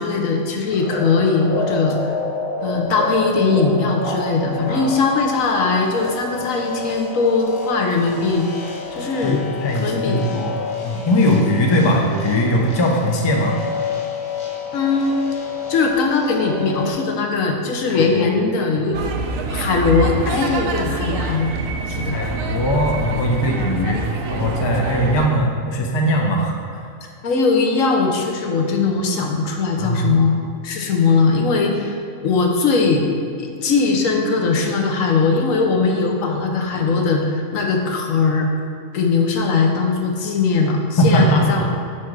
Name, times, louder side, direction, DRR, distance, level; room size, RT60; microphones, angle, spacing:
voice 1, 0.0-2.1 2.6-8.5 8.9-9.4 9.7-10.3 14.7-15.4 15.7-19.2 19.5-21.5 21.8-22.2 27.2-30.4 30.6-33.1 33.4-38.5 38.9-41.7, left 4 dB, 70° left, 2 dB, 1.1 m, -20 dB
sound 1, 0.7-16.9, left 4 dB, 90° left, 1.6 m, -29 dB
voice 2, 9.2-10.6 10.8-13.6 17.9-18.3 22.1-26.5 29.8-30.2 41.0-41.7, equal, 35° left, 0 dB, 0.4 m, -20 dB
sound 2, 18.9-25.3, right 3 dB, 75° right, 1.0 m, -26 dB
6.0 x 4.4 x 4.6 m, 2.4 s
omnidirectional pair, 1.5 m